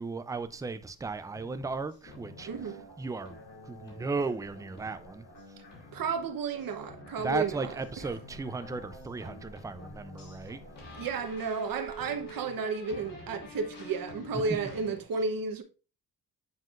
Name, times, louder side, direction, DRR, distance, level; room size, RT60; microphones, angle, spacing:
voice 1, 0.0-2.5 3.0-3.3 3.7-5.3 7.2-10.6, right 4 dB, 10° right, 0.3 m, -35 dB
sound 1, 1.3-15.0, left 2 dB, 60° left, 2.9 m, -48 dB
voice 2, 2.4-2.8 5.9-7.8 11.0-15.6, right 5 dB, 60° right, 1.0 m, -32 dB
7.5 x 5.6 x 2.4 m
cardioid pair, 150°, 39 cm